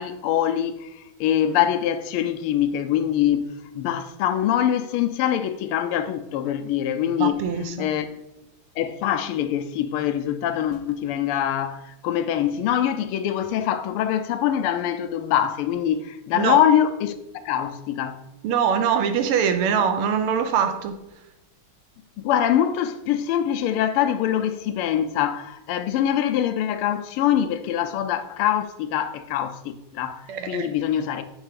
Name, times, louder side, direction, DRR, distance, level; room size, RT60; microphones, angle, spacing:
voice 1, 0.0-7.4 7.8-8.2 8.8-17.1 17.4-18.2 22.2-31.2, left 10 dB, 85° left, 1.5 m, -24 dB
voice 2, 7.2-7.9 16.3-16.6 18.4-21.0 30.3-30.7, right 7 dB, 85° right, 1.7 m, -23 dB
8.1 x 3.3 x 5.1 m
omnidirectional pair, 2.4 m